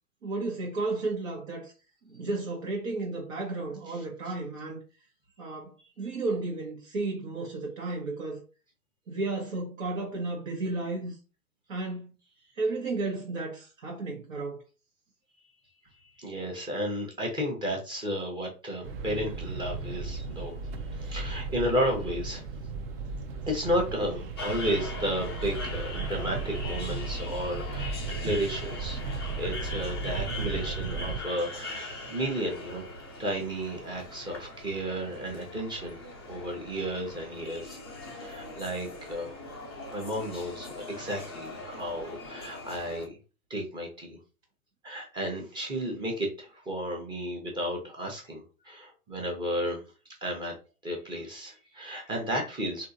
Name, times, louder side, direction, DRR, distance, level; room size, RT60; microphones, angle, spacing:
voice 1, 0.2-1.7 2.1-4.8 5.4-8.4 9.1-11.1 11.7-12.1 12.6-14.6, right 3 dB, 60° right, 1.2 m, -33 dB
voice 2, 16.0-20.6 21.0-22.4 23.5-29.0 29.4-32.9 33.2-36.0 36.3-37.8 38.1-39.4 39.9-43.2 43.5-44.2 44.8-49.8 50.2-50.5 50.8-52.9, equal, 10° right, 0.8 m, -33 dB
sound 1, 18.8-31.2, right 4 dB, 40° right, 0.6 m, -35 dB
sound 2, 24.4-43.1, left 2 dB, 20° left, 0.3 m, -41 dB
3.5 x 2.6 x 2.7 m
figure-of-eight pair, 115°, 45 cm